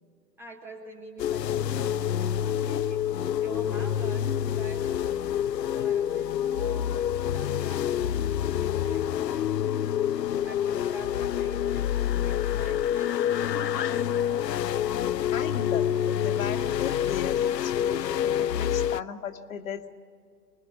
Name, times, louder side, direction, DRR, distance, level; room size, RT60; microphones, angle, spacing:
voice 1, 0.4-3.0 3.4-14.4 14.7-15.1, right 2 dB, 5° right, 0 dB, 0.7 m, -46 dB
sound 1, 1.2-19.0, left 10 dB, 80° left, 0.6 m, -27 dB
voice 2, 15.3-19.9, left 7 dB, 55° left, 6 dB, 1.7 m, -35 dB
24.5 x 21.0 x 9.6 m, 2.2 s
hypercardioid pair, 140°, 49 cm